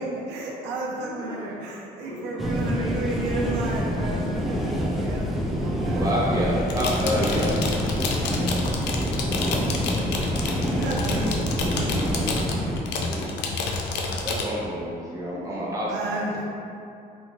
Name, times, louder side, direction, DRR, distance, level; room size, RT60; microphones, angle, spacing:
voice 1, 0.0-6.3 10.7-13.1 15.9-16.4, right 2 dB, 85° right, -2 dB, 0.5 m, -32 dB
voice 2, 0.9-1.6 1.9-4.2 7.3-8.8 9.2-10.3 15.3-15.8 16.3-16.4, left 1 dB, 40° left, -9 dB, 0.6 m, -41 dB
sound 1, 2.4-12.8, equal, ahead, 0.3 m, -26 dB
voice 3, 5.8-7.6 11.9-12.6 13.0-13.3 14.2-16.2, equal, 20° right, -6 dB, 0.8 m, -29 dB
sound 2, 6.6-14.4, left 4 dB, 85° left, 0.4 m, -30 dB
3.7 x 2.2 x 2.9 m, 2.5 s
cardioid pair, 110°, 17 cm